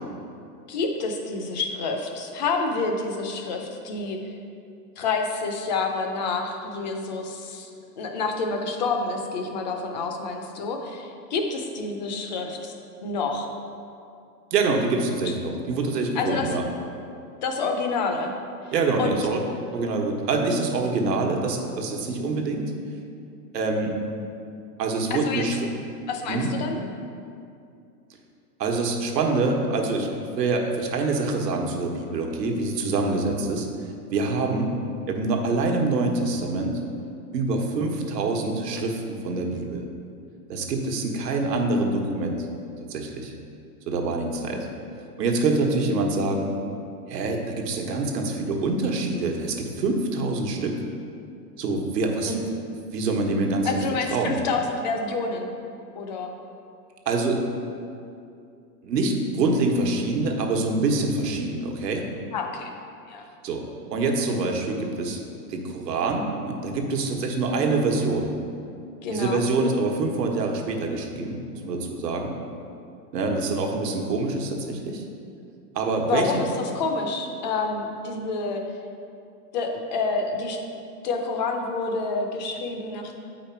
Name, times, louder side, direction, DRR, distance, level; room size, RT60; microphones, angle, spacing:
voice 1, 0.7-4.3 5.0-7.7 8.0-12.7 13.0-13.5 15.2-15.3 16.2-16.6 17.4-18.3 19.0-19.2 25.1-25.5 26.1-26.8 44.5-44.6 52.3-52.5 53.6-55.5 55.9-56.3 62.3-62.7 63.1-63.2 69.0-69.4 76.1-78.6 79.5-80.6 81.0-83.1, left 4 dB, 30° left, 3 dB, 0.5 m, -28 dB
voice 2, 14.5-16.6 18.7-19.4 19.7-22.7 23.5-24.0 24.8-25.7 26.3-26.5 28.6-30.1 30.4-33.7 34.1-34.7 35.1-36.8 37.3-39.9 40.5-42.5 42.8-43.3 43.9-44.7 45.2-46.5 47.1-50.8 51.6-52.4 52.9-53.8 54.1-54.4 57.0-57.4 58.8-62.1 63.4-65.2 65.5-68.3 69.1-72.3 73.1-75.0 75.7-76.4, right 3 dB, 80° right, 2 dB, 1.3 m, -25 dB
8.3 x 4.9 x 4.5 m, 2.5 s
hypercardioid pair, 160°, 48 cm